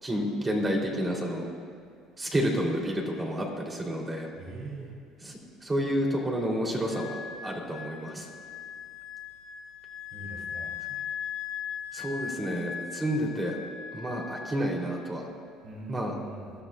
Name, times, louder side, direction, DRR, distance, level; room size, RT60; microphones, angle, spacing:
voice 1, 0.0-1.4 2.2-4.3 5.2-8.3 11.9-13.6 13.9-15.2 15.9-16.1, equal, 20° right, -1 dB, 3.4 m, -30 dB
voice 2, 4.4-4.9 10.1-10.7 15.6-16.5, right 2 dB, 55° right, -2 dB, 3.3 m, -42 dB
Wind instrument woodwind instrument, 6.9-15.2, left 8 dB, 65° left, 2.9 m, -39 dB
21.5 x 13.5 x 2.5 m, 2.2 s
supercardioid pair, 95°, 0 cm